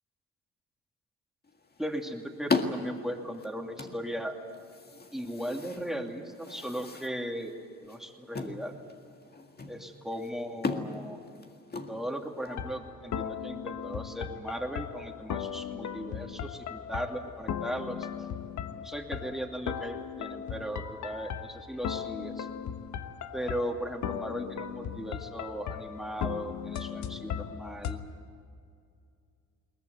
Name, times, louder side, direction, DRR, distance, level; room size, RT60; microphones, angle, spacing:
sound 1, 1.5-12.5, left 4 dB, 30° left, 1.9 m, -38 dB
voice 1, 1.8-4.4 5.1-7.5 7.8-8.7 9.7-11.2 11.9-18.1 18.7-22.5 23.3-28.0, equal, ahead, 2 dB, 2.6 m, -37 dB
sound 2, 12.5-28.0, left 8 dB, 70° left, 1.3 m, -37 dB
22.0 x 19.5 x 9.4 m, 2.4 s
cardioid pair, 90°, 30 cm